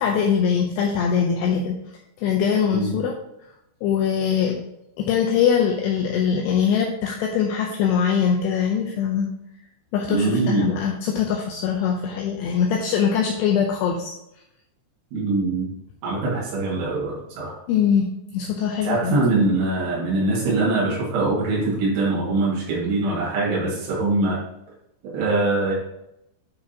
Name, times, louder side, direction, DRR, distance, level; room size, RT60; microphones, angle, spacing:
voice 1, 0.0-1.8 2.2-3.1 3.8-4.6 5.0-9.3 9.9-14.1 17.7-18.1 18.3-19.2, left 7 dB, 80° left, 0 dB, 2.5 m, -22 dB
voice 2, 10.1-10.8 15.1-15.7 16.0-17.5 18.8-24.4 25.1-25.7, right 3 dB, 85° right, -6 dB, 4.4 m, -23 dB
10.0 x 4.9 x 2.8 m, 0.85 s
omnidirectional pair, 5.4 m